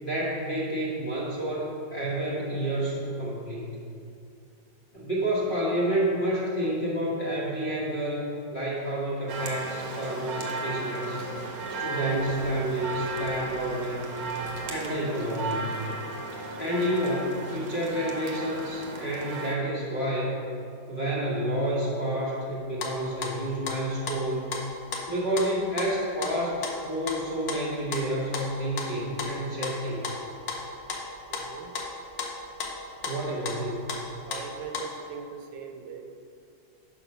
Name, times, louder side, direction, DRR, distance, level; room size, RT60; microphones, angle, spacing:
voice 1, 0.0-3.8 4.9-11.2 11.7-14.2 14.7-15.7 16.6-20.4 20.9-24.5 25.1-30.0 33.0-34.1, right 1 dB, 30° left, -7 dB, 1.3 m, -29 dB
sound 1, 9.3-19.6, right 2 dB, 55° right, 1.2 m, -35 dB
sound 2, 22.5-24.6 24.9-26.3 26.6-27.2 27.5-28.0 28.3-28.9 29.2-29.7 30.0-31.0 31.3-31.5 31.7-32.3 32.6-32.8 33.0-33.2 33.4-33.6 33.9-34.0 34.3-34.5 34.7-34.8, left 5 dB, 60° left, 1.2 m, -34 dB
voice 2, 31.3-31.7 34.3-36.2, right 6 dB, 80° right, 5 dB, 1.3 m, -41 dB
6.0 x 5.8 x 5.3 m, 2.5 s
omnidirectional pair, 2.1 m